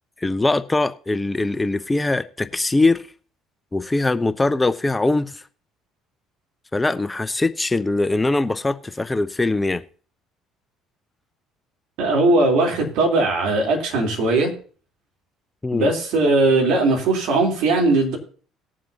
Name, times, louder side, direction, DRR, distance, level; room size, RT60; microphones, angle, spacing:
voice 1, 0.2-3.0 3.7-5.4 6.7-9.8 15.6-15.9, left 2 dB, 15° left, 0.7 m, -22 dB
voice 2, 12.0-14.5 15.7-18.2, right 2 dB, 65° right, 3.6 m, -19 dB
19.5 x 7.5 x 2.8 m
hypercardioid pair, 55°, 0 cm